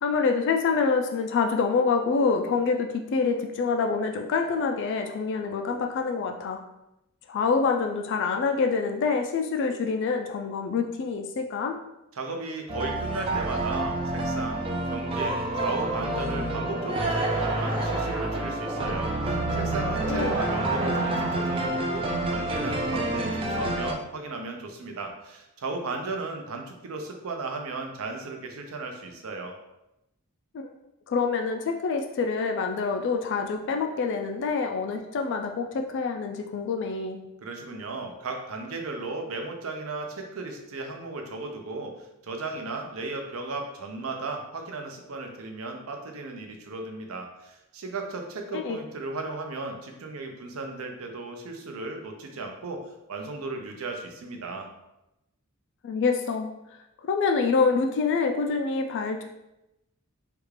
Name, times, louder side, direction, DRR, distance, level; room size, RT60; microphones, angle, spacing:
voice 1, 0.0-6.6 7.3-11.8 20.1-20.4 30.5-30.7 31.1-37.2 48.5-48.8 55.8-56.5 57.0-59.2, left 4 dB, 55° left, 4 dB, 0.3 m, -26 dB
voice 2, 12.2-29.6 37.4-52.8 53.1-54.7, right 3 dB, 70° right, 3 dB, 0.6 m, -35 dB
sound 1, 12.7-23.9, right 2 dB, 25° right, 0.3 m, -28 dB
sound 2, 15.7-21.7, right 1 dB, 5° right, 0.7 m, -34 dB
3.4 x 2.3 x 3.2 m, 0.89 s
head